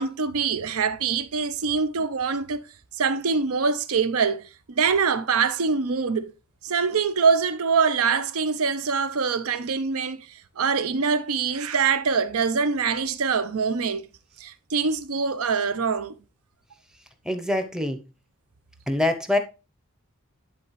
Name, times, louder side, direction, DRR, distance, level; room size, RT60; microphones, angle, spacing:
voice 1, 0.0-2.6 3.0-4.4 4.8-6.3 6.6-10.2 10.6-14.0 14.4-16.1, right 5 dB, 80° right, 0.6 m, -24 dB
voice 2, 17.3-18.0 18.9-19.4, left 1 dB, 5° right, 0.6 m, -24 dB
10.5 x 4.0 x 3.1 m
head